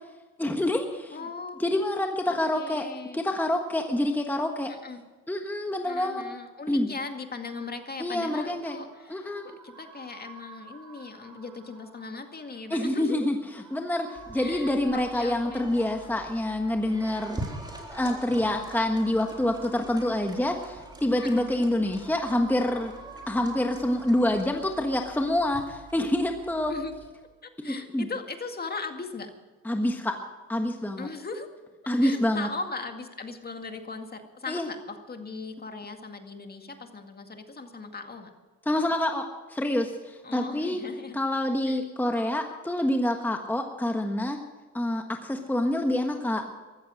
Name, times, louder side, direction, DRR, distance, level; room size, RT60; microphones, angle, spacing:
voice 1, 0.4-1.2 1.6-2.9 3.1-4.7 5.3-6.2 6.7-6.9 8.0-8.8 9.1-9.6 12.7-17.4 17.9-22.9 23.3-26.7 27.6-28.1 29.6-30.1 30.5-31.1 31.9-32.5 34.5-34.7 38.7-40.8 41.1-44.4 44.7-46.4, left 1 dB, 5° left, 4 dB, 1.4 m, -27 dB
voice 2, 1.1-1.6 2.3-3.2 4.7-5.0 5.9-9.3 9.6-13.3 14.4-15.7 21.2-21.3 26.7-26.9 27.4-29.3 31.0-31.5 32.0-38.3 40.2-41.2 41.7-41.8, left 4 dB, 30° left, 5 dB, 2.1 m, -38 dB
sound 1, 8.4-25.2, right 3 dB, 80° right, 5.8 m, -51 dB
sound 2, 14.2-27.1, right 1 dB, 15° right, 3.7 m, -44 dB
14.5 x 14.0 x 6.4 m, 1.3 s
cardioid pair, 90°, 30 cm